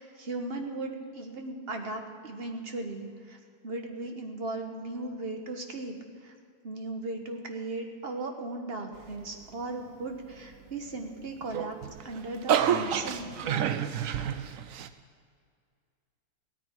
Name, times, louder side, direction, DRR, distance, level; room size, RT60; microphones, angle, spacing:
voice 1, 0.0-3.4 3.6-5.9 6.2-6.3 6.6-11.8 12.0-13.8, right 2 dB, 40° right, 4 dB, 1.5 m, -37 dB
sound 1, 11.4-14.9, right 9 dB, 65° right, 1.0 m, -29 dB
16.5 x 13.5 x 4.5 m, 2.1 s
omnidirectional pair, 1.6 m